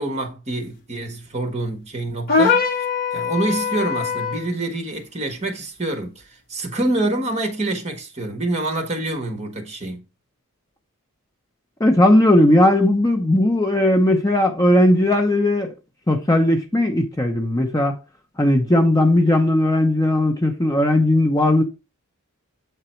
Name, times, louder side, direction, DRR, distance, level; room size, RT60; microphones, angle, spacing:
voice 1, 0.0-2.8 3.1-10.0, right 2 dB, 30° right, 1.4 m, -26 dB
sound 1, 2.3-4.5, left 5 dB, 45° left, 1.2 m, -21 dB
voice 2, 11.8-15.7 16.1-17.9 18.4-21.6, left 1 dB, 15° left, 0.8 m, -17 dB
8.1 x 3.9 x 4.4 m
head